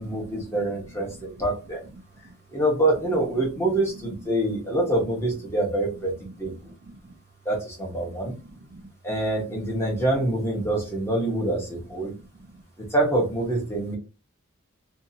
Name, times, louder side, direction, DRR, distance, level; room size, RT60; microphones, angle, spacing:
voice 1, 0.0-1.8 2.5-6.1 6.4-6.7 7.4-8.4 9.0-12.1 12.9-14.0, right 1 dB, 10° left, 0.9 m, -25 dB
voice 2, 3.4-3.7 6.4-7.2 8.0-8.9 12.1-12.6 13.7-13.8, right 2 dB, 45° right, 0.5 m, -47 dB
2.7 x 2.5 x 2.7 m
head